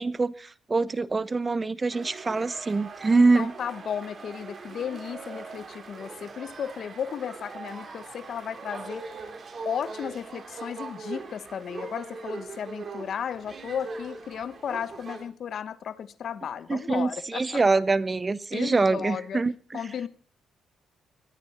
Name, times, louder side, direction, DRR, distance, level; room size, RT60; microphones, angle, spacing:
voice 1, 0.0-3.5 16.7-19.8, right 3 dB, 25° right, 0.8 m, -24 dB
sound 1, 1.9-15.2, right 4 dB, 45° right, 4.0 m, -41 dB
voice 2, 3.1-9.0 9.6-17.6 18.5-19.4 19.7-20.1, left 8 dB, 60° left, 1.1 m, -34 dB
20.5 x 13.5 x 4.3 m
cardioid pair, 90°, 0 cm